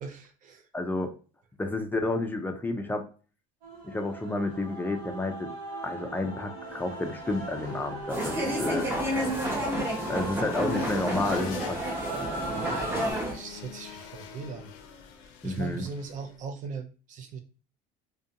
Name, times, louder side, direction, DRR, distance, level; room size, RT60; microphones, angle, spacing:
voice 1, 0.0-0.7 9.1-9.2 12.5-13.0 13.3-17.4, right 5 dB, 45° right, 6 dB, 0.5 m, -40 dB
voice 2, 0.7-1.1 1.6-3.1 3.8-5.5 5.8-8.9 10.1-12.0 15.4-15.8, left 2 dB, 10° left, 4 dB, 0.3 m, -30 dB
Male singing / Female singing / Musical instrument, 3.6-13.1, right 2 dB, 85° right, 0.8 m, -38 dB
sound 1, 6.6-16.4, left 7 dB, 85° left, 0.5 m, -45 dB
sound 2, 8.1-13.3, equal, 15° right, 0.7 m, -30 dB
2.5 x 2.2 x 2.7 m, 0.36 s
cardioid pair, 125°, 18 cm